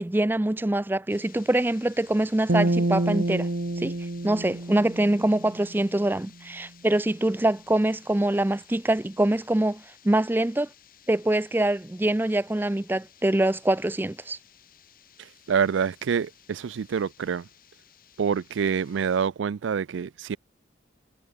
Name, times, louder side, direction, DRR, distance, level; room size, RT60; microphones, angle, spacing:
voice 1, 0.0-3.5 3.8-3.9 4.2-10.7 11.1-14.4, right 1 dB, 10° right, 0.4 m, -24 dB
sound 1, 1.1-19.3, left 11 dB, 50° left, 4.6 m, -56 dB
sound 2, 2.5-5.8, right 1 dB, 60° right, 1.4 m, -27 dB
voice 2, 15.5-17.4 18.2-20.4, right 6 dB, 80° right, 0.4 m, -26 dB
head